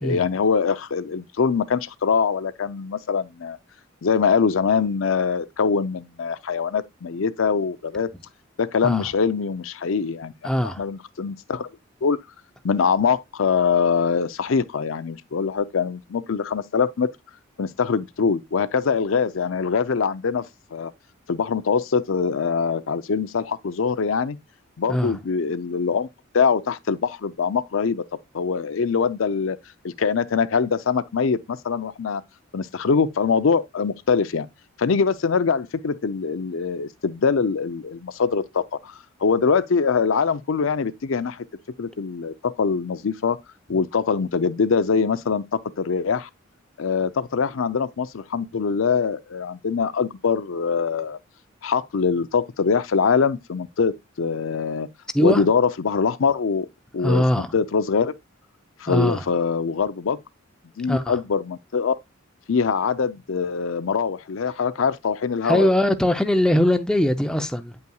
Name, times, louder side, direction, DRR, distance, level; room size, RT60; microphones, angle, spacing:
voice 1, 0.0-3.6 4.0-8.1 8.6-10.3 10.8-11.7 12.0-12.2 12.6-17.1 17.6-20.4 20.7-20.9 21.3-24.4 24.8-26.1 26.3-28.0 28.3-29.6 29.8-32.2 32.5-34.5 34.8-38.9 39.2-41.4 41.8-43.4 43.7-46.3 46.8-51.2 51.6-53.9 54.2-54.9 55.2-56.7 56.9-57.2 57.5-58.1 58.8-60.2 60.8-62.0 62.5-65.7, left 5 dB, 70° left, 0.5 m, -23 dB
voice 2, 10.4-10.8 24.9-25.2 43.7-43.8 55.1-55.5 57.0-57.5 58.9-59.2 60.9-61.2 65.4-67.8, left 1 dB, 5° left, 0.5 m, -21 dB
9.1 x 5.6 x 2.3 m
head